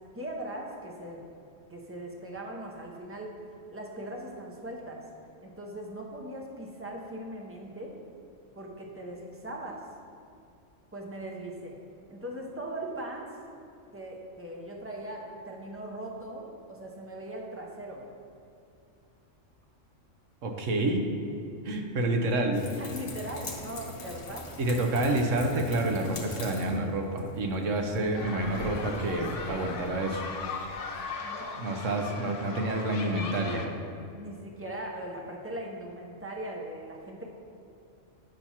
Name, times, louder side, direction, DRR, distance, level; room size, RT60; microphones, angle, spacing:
voice 1, 0.1-1.3 1.7-3.4 3.7-5.0 5.4-7.9 8.6-9.8 10.9-11.8 12.1-13.4 13.9-18.1 22.8-24.5 31.2-32.1 34.1-37.3, right 1 dB, 15° right, -1 dB, 0.4 m, -40 dB
voice 2, 20.4-21.0 21.6-22.6 24.6-30.2 31.6-33.7, right 2 dB, 75° right, 3 dB, 1.1 m, -28 dB
sound 1, 22.5-31.0, left 2 dB, 50° left, 1.0 m, -42 dB
sound 2, 28.1-33.7, left 4 dB, 75° left, 1.0 m, -39 dB
8.9 x 5.8 x 2.8 m, 2.5 s
omnidirectional pair, 1.3 m